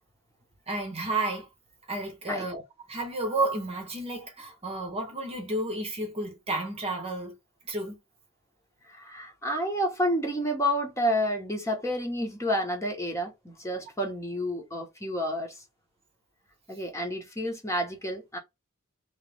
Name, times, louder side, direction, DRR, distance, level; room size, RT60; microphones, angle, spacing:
voice 1, 0.7-1.5 1.9-2.6 2.9-7.4 7.6-8.0, right 2 dB, 25° right, 1.1 m, -31 dB
voice 2, 8.9-15.6 16.7-18.4, equal, 15° left, 1.2 m, -30 dB
3.2 x 3.1 x 3.4 m
head